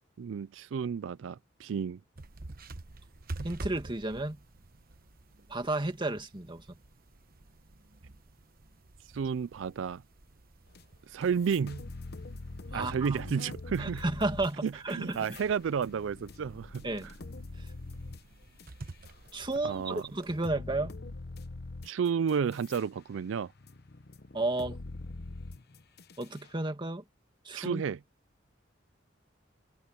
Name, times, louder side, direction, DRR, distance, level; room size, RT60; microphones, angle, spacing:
voice 1, 0.2-2.0 9.1-10.0 11.1-11.8 12.7-14.0 14.6-17.1 19.6-20.0 21.8-23.5 27.5-28.0, right 6 dB, 75° right, 0.4 m, -32 dB
sound 1, 2.2-20.4, right 2 dB, 50° right, 1.1 m, -49 dB
voice 2, 3.4-4.4 5.5-6.6 12.7-13.2 13.8-15.3 16.8-17.1 19.3-20.9 24.3-24.8 26.2-27.0 27.5-27.8, right 2 dB, 25° right, 2.3 m, -32 dB
sound 2, 10.7-10.8 11.2-19.5 20.0-20.1 20.4-22.8 23.2-26.5, left 2 dB, 55° left, 0.9 m, -44 dB
head